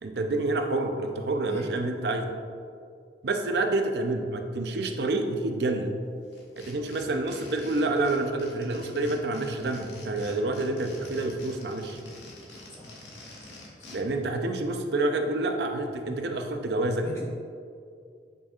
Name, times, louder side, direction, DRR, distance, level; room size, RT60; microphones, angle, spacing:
voice 1, 0.0-2.3 3.2-5.9 6.6-12.0 13.9-17.1, right 2 dB, 65° right, 5 dB, 0.6 m, -28 dB
voice 2, 1.5-1.7 12.7-12.9 13.8-14.0 17.0-17.2, equal, 15° left, -6 dB, 1.4 m, -43 dB
sound 1, 6.3-14.0, left 2 dB, 80° left, 1.4 m, -46 dB
8.6 x 5.3 x 2.4 m, 2.3 s
head